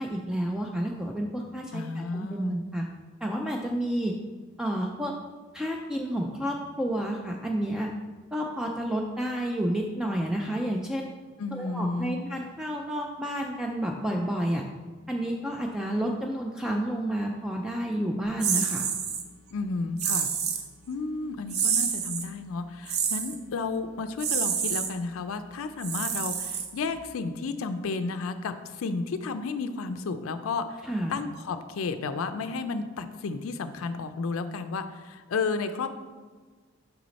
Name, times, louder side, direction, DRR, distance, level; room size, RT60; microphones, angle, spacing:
voice 1, 0.0-2.9 3.2-4.2 4.6-5.1 5.5-7.9 8.3-11.1 11.5-14.6 15.1-18.9 30.8-31.2, right 1 dB, 5° right, 0 dB, 0.4 m, -30 dB
voice 2, 1.7-2.6 11.4-12.2 19.5-20.3 20.9-30.8 31.1-35.9, left 4 dB, 80° left, 9 dB, 0.4 m, -32 dB
sound 1, 18.4-19.2 20.0-20.7 21.5-22.3 22.9-23.4 24.2-24.9 25.8-27.0, right 7 dB, 55° right, 0.6 m, -28 dB
6.2 x 4.9 x 4.0 m, 1.4 s
head